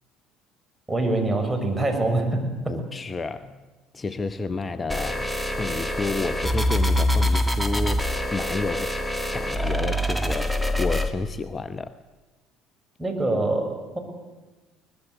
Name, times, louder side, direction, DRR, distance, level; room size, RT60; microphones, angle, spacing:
voice 1, 0.9-2.8 13.0-14.0, right 2 dB, 10° right, 6.2 m, -25 dB
voice 2, 2.7-3.6 3.9-9.0 9.3-12.0, left 3 dB, 25° left, 0.8 m, -31 dB
sound 1, 4.9-11.1, left 1 dB, 5° left, 2.1 m, -25 dB
23.0 x 20.5 x 8.1 m
hypercardioid pair, 60°, 0 cm